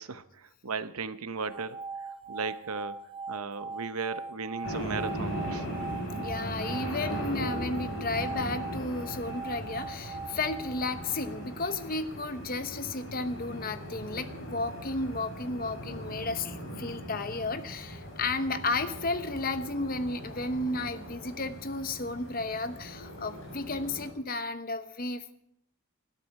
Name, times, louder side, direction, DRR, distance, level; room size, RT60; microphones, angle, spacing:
voice 1, 0.0-5.7, right 5 dB, 85° right, 12 dB, 0.9 m, -37 dB
sound 1, 1.4-11.5, right 4 dB, 20° right, 0.6 m, -41 dB
sound 2, 4.6-24.1, equal, 70° left, 6.2 m, -39 dB
voice 2, 6.1-25.3, left 3 dB, 40° left, 10 dB, 1.0 m, -33 dB
19.5 x 13.0 x 4.8 m, 0.70 s
head